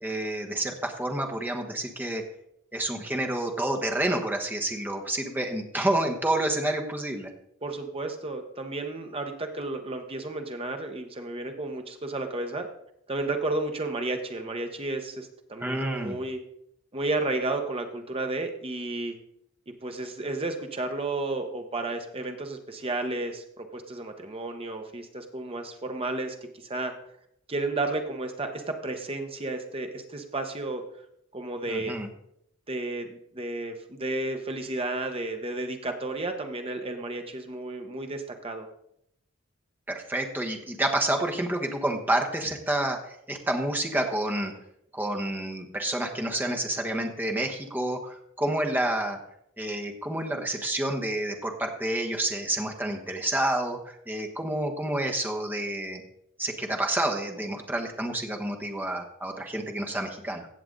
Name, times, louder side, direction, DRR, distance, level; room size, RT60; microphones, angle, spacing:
voice 1, 0.0-2.2 2.7-7.3 15.6-16.2 31.7-32.1 39.9-44.5 44.9-49.2 49.6-56.0 56.4-60.5, right 1 dB, 10° right, 2 dB, 1.2 m, -29 dB
voice 2, 7.6-12.7 13.1-16.4 16.9-19.2 19.7-26.3 26.6-26.9 27.5-30.8 31.3-32.0 32.7-38.7, right 2 dB, 30° right, 5 dB, 1.2 m, -32 dB
16.0 x 6.9 x 3.9 m, 0.75 s
head